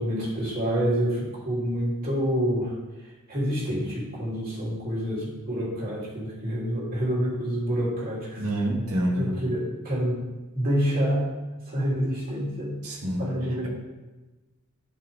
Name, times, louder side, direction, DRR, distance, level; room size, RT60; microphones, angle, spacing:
voice 1, 0.0-2.7 3.3-8.4 9.1-10.3 10.5-11.3 11.7-12.8 13.2-13.7, equal, 45° right, -6 dB, 3.1 m, -27 dB
voice 2, 8.4-9.3 12.8-13.2, right 1 dB, 85° right, -1 dB, 1.9 m, -27 dB
11.0 x 5.5 x 3.5 m, 1.1 s
head